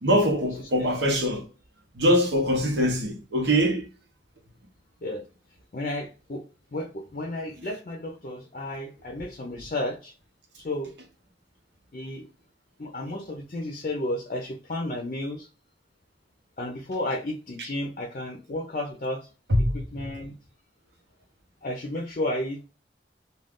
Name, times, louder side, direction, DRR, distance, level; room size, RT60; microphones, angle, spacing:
voice 1, 0.0-1.5 2.0-3.9 19.5-20.1, equal, 85° right, 0.9 m, -23 dB
voice 2, 0.6-0.9 5.0-5.2 5.7-6.4 6.7-10.1 10.6-10.9 11.9-12.3 12.8-15.5 16.6-19.3 19.7-20.3 21.6-22.6, left 1 dB, 45° left, 0.5 m, -32 dB
2.5 x 2.3 x 3.4 m
head